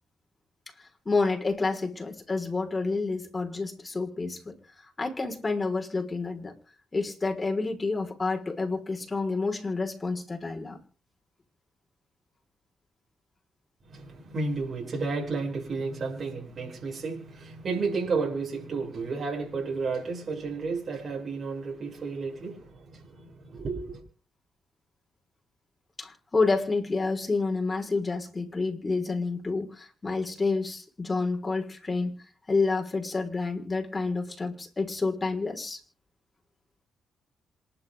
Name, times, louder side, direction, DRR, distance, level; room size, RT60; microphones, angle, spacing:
voice 1, 0.8-4.6 5.0-6.5 6.9-10.8 26.0-35.8, left 3 dB, 30° left, 5.7 m, -29 dB
voice 2, 13.9-24.0, right 4 dB, 55° right, 7.8 m, -32 dB
27.5 x 11.5 x 4.0 m
supercardioid pair, 60°, 0 cm